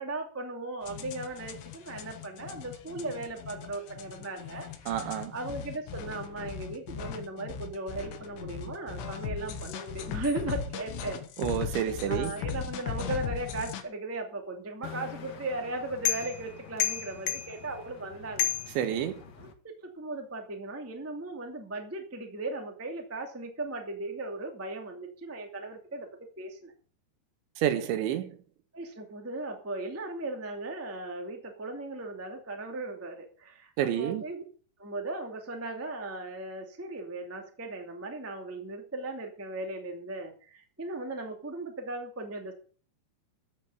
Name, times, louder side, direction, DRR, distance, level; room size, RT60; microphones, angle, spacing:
voice 1, 0.0-5.0 5.3-11.2 12.1-18.5 19.4-26.1 26.4-26.7 28.7-34.4 34.8-42.5, right 2 dB, 5° right, 1.0 m, -37 dB
sound 1, 0.9-13.8, left 7 dB, 85° left, 3.9 m, -38 dB
voice 2, 4.9-5.3 11.4-12.3 18.8-19.2 27.6-28.3 33.8-34.2, right 10 dB, 85° right, 3.8 m, -29 dB
sound 2, 14.8-19.5, left 11 dB, 60° left, 1.8 m, -34 dB
14.0 x 6.7 x 8.6 m
omnidirectional pair, 5.2 m